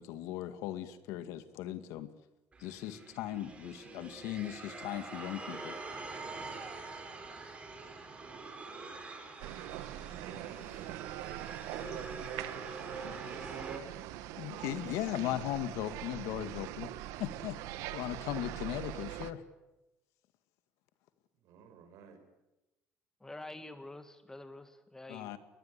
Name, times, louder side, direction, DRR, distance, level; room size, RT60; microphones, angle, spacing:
voice 1, 0.0-2.1 2.6-5.8 14.4-16.9 17.2-17.6 17.9-19.4 25.1-25.4, left 13 dB, 80° left, 11 dB, 2.0 m, -38 dB
sound 1, 2.5-13.8, right 3 dB, 20° right, 4.6 m, -46 dB
sound 2, 9.4-19.3, right 14 dB, 85° right, 1.4 m, -42 dB
voice 2, 10.2-11.0 11.7-13.9 21.4-22.2, right 6 dB, 70° right, 8 dB, 5.9 m, -47 dB
voice 3, 23.2-25.3, left 2 dB, 10° left, 10 dB, 1.8 m, -47 dB
22.0 x 20.5 x 9.9 m, 0.99 s
cardioid pair, 135°, 5 cm